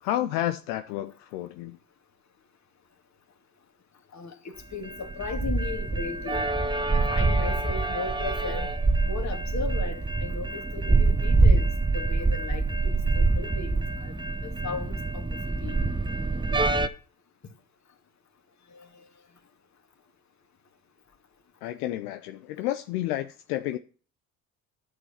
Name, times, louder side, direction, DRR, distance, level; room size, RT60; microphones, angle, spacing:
voice 1, 0.0-1.8 21.6-23.8, left 13 dB, 75° left, 0.8 m, -30 dB
voice 2, 4.1-6.5 6.9-8.7 9.0-11.7 11.9-14.2 14.4-15.2 15.6-15.8 18.7-19.0, left 4 dB, 35° left, 2.3 m, -37 dB
sound 1, 4.7-16.9, right 3 dB, 10° right, 1.0 m, -25 dB
11.0 x 6.6 x 5.8 m
hypercardioid pair, 60°, 46 cm